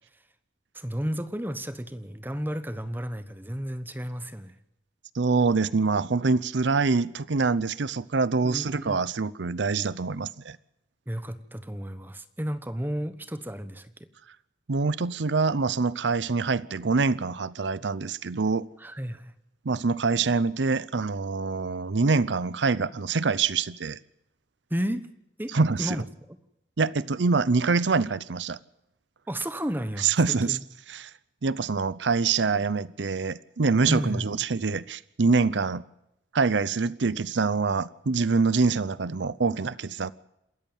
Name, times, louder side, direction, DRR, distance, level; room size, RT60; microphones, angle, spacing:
voice 1, 0.7-4.5 8.4-9.0 11.1-13.9 18.8-19.3 24.7-25.1 25.4-26.4 29.3-30.6 33.9-34.3, equal, 10° right, 1.1 m, -33 dB
voice 2, 5.1-10.6 14.7-18.7 19.6-24.0 25.5-26.0 26.8-28.6 30.0-30.6 30.9-31.1 31.4-35.8 36.3-40.1, right 4 dB, 90° right, 0.7 m, -25 dB
27.5 x 14.0 x 7.2 m
head